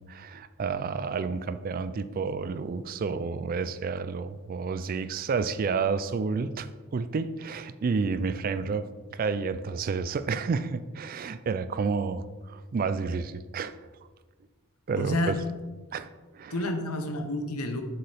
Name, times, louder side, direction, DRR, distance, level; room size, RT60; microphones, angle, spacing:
voice 1, 0.0-13.8 14.9-15.4 15.9-16.5, right 5 dB, 40° right, 13 dB, 0.3 m, -30 dB
voice 2, 15.0-15.4 16.5-17.8, left 1 dB, 80° left, 6 dB, 1.0 m, -30 dB
7.6 x 6.8 x 3.5 m, 1.3 s
head